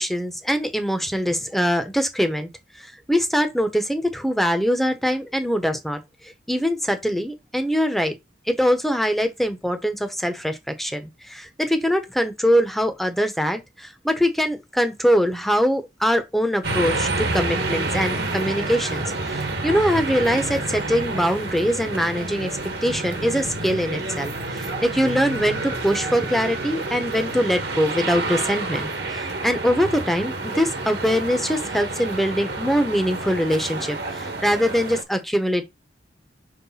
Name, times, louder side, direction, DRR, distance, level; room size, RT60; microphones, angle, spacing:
voice 1, 0.0-2.5 2.8-8.2 8.5-35.6, equal, ahead, 0.9 m, -23 dB
sound 1, 16.6-35.0, right 2 dB, 60° right, 1.5 m, -29 dB
5.7 x 3.4 x 5.6 m
head